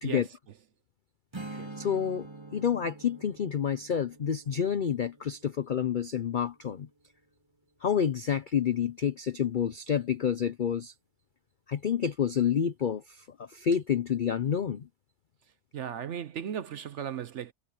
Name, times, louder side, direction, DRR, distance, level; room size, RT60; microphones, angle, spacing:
Strum, 1.3-6.7, right 2 dB, 15° right, 1.9 m, -46 dB
voice 1, 1.5-2.3 2.5-6.9 7.8-10.9 11.7-14.9, left 8 dB, 70° left, 0.4 m, -29 dB
voice 2, 15.7-17.5, right 9 dB, 60° right, 0.8 m, -36 dB
omnidirectional pair, 1.7 m